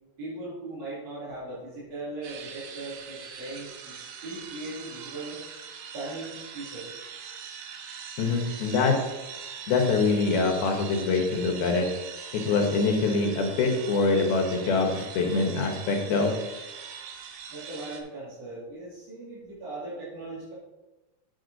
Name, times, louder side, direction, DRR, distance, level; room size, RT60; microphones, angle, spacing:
voice 1, 0.2-5.4 5.9-7.0 17.5-20.5, right 2 dB, 45° right, -10 dB, 3.3 m, -39 dB
sound 1, 2.2-18.0, right 7 dB, 85° right, 2.8 m, -42 dB
voice 2, 8.2-8.9 9.7-11.9 12.4-16.3, left 4 dB, 80° left, 2 dB, 3.1 m, -24 dB
8.0 x 7.3 x 4.0 m, 1.1 s
omnidirectional pair, 4.4 m